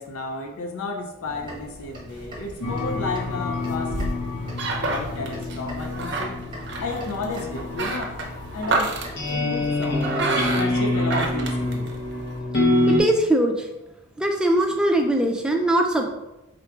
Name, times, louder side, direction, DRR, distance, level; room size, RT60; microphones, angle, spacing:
voice 1, 0.0-4.2 4.8-6.5 6.8-8.2 8.5-9.0 9.3-10.1 10.5-11.9, left 2 dB, 85° left, 3 dB, 0.5 m, -32 dB
sound 1, 1.2-9.4, equal, 20° right, 0.8 m, -43 dB
sound 2, 2.1-12.4, right 3 dB, 55° right, 0.5 m, -30 dB
sound 3, 2.6-13.0, left 2 dB, 55° left, 0.7 m, -27 dB
voice 2, 12.9-13.7 14.2-16.1, right 1 dB, 5° right, 2 dB, 0.3 m, -21 dB
4.5 x 3.7 x 2.3 m, 1.0 s
head